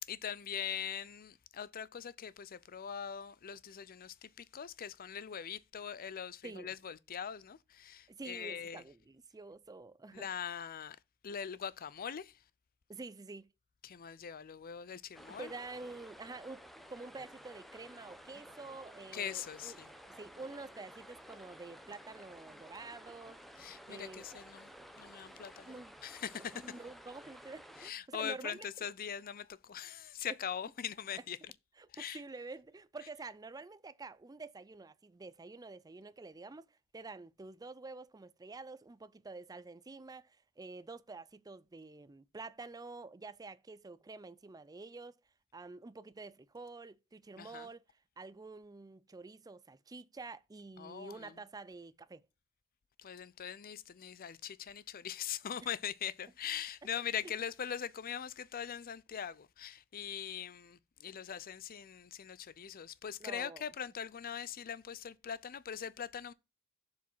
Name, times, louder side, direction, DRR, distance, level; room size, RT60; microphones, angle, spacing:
voice 1, 0.0-8.8 10.1-11.0 11.2-12.3 13.8-15.5 19.1-19.9 23.6-24.7 25.0-25.7 26.0-26.6 27.8-31.4 31.9-32.2 47.4-47.7 50.8-51.3 53.0-66.3, left 8 dB, 45° left, 0.5 m, -42 dB
voice 2, 6.4-6.7 8.1-10.3 12.9-13.5 15.3-23.4 23.9-24.4 25.6-26.0 26.5-28.9 31.2-31.3 31.8-45.1 45.5-47.8 48.2-52.3 56.9-57.3 63.2-63.6, right 3 dB, 15° right, 0.4 m, -48 dB
sound 1, 15.1-27.9, equal, ahead, 0.8 m, -54 dB
7.3 x 4.9 x 5.6 m
head